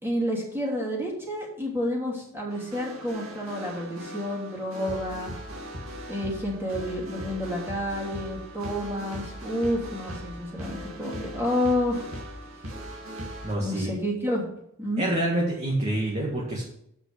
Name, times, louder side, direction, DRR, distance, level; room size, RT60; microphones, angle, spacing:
voice 1, 0.0-5.3 6.1-12.1 13.6-14.5 14.8-15.0, left 1 dB, 10° right, -4 dB, 3.0 m, -29 dB
sound 1, 2.5-13.5, equal, 70° right, 2.5 m, -39 dB
voice 2, 13.4-13.9 15.0-16.6, right 1 dB, 30° right, -3 dB, 1.9 m, -27 dB
8.2 x 5.8 x 6.7 m, 0.74 s
head